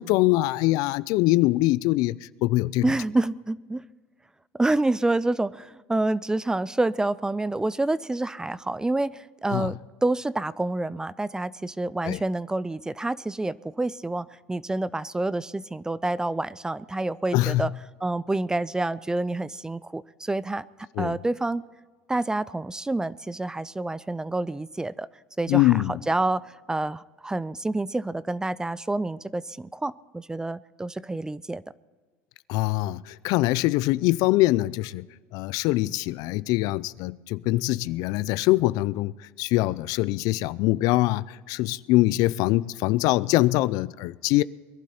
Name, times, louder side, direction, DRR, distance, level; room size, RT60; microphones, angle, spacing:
voice 1, 0.0-2.8 9.5-9.7 12.0-12.2 17.3-17.7 21.0-21.2 25.5-26.0 32.5-35.1 35.3-39.1 39.4-44.4, left 18 dB, 65° left, 0.4 m, -23 dB
voice 2, 2.8-3.8 4.5-17.7 18.0-20.6 21.0-21.6 22.1-25.1 25.4-31.6, right 2 dB, 10° right, 0.4 m, -28 dB
21.5 x 11.5 x 4.3 m
supercardioid pair, 105°, 7 cm